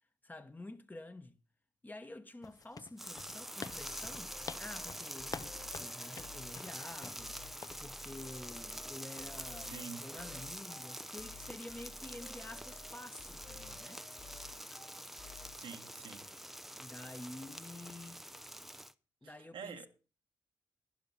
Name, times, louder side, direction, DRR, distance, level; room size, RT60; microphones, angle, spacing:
voice 1, 0.2-1.4 1.8-14.1 16.7-18.3 19.2-19.9, left 2 dB, 20° left, 1.1 m, -49 dB
sound 1, 2.4-7.2 7.6-7.9, left 5 dB, 45° left, 0.6 m, -48 dB
sound 2, 3.0-18.9, equal, 5° right, 0.5 m, -46 dB
sound 3, 3.7-15.6, left 4 dB, 70° left, 5.5 m, -55 dB
voice 2, 9.6-10.1 15.6-16.3 19.2-19.9, right 6 dB, 80° right, 1.4 m, -47 dB
11.5 x 10.5 x 4.2 m
cardioid pair, 60°, 9 cm